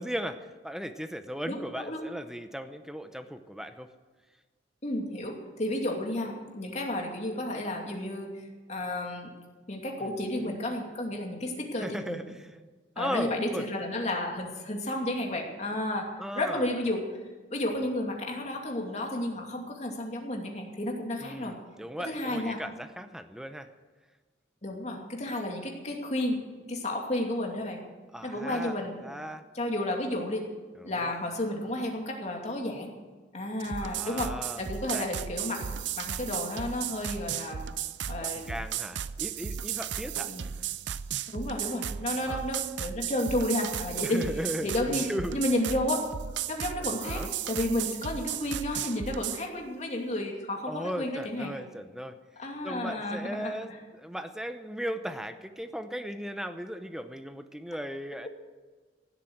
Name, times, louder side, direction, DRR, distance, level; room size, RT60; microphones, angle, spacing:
voice 1, 0.0-3.9 10.0-10.5 11.8-12.6 13.0-13.7 16.2-16.6 21.2-23.7 28.1-28.8 29.0-29.4 30.8-31.1 33.8-34.6 34.9-35.1 38.2-40.3 42.2-42.4 44.0-45.4 47.0-47.3 50.7-58.3, equal, 5° right, 9 dB, 0.7 m, -37 dB
voice 2, 1.5-2.0 4.8-9.3 9.7-12.4 13.0-16.1 16.3-17.0 17.5-21.5 22.0-22.6 24.6-26.4 26.7-27.8 28.2-29.0 29.5-30.4 30.8-32.9 33.3-34.3 34.6-37.6 38.1-38.5 40.2-40.5 41.3-44.2 44.6-45.1 45.3-46.0 46.5-51.5 52.4-53.5, left 1 dB, 40° left, 1 dB, 2.6 m, -32 dB
sound 1, 33.6-49.4, right 9 dB, 75° right, 0.5 m, -35 dB
16.5 x 8.3 x 7.9 m, 1.3 s
head